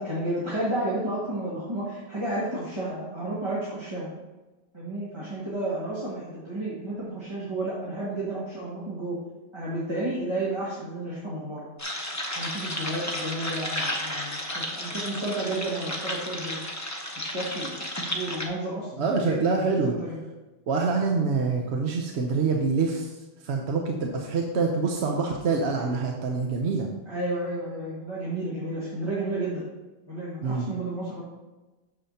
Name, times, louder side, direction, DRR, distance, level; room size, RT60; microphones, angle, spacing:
voice 1, 0.0-4.1 4.7-9.2 9.5-11.7 12.3-16.6 17.1-19.4 19.7-20.2 27.1-29.6 30.1-31.2, right 1 dB, 25° right, -7 dB, 1.7 m, -32 dB
sound 1, 11.8-18.5, left 1 dB, 15° left, 0.9 m, -33 dB
voice 2, 19.0-20.0 20.7-23.2 23.4-26.9 30.4-30.7, right 4 dB, 70° right, 1 dB, 1.0 m, -26 dB
9.0 x 7.0 x 2.8 m, 1.1 s
omnidirectional pair, 1.2 m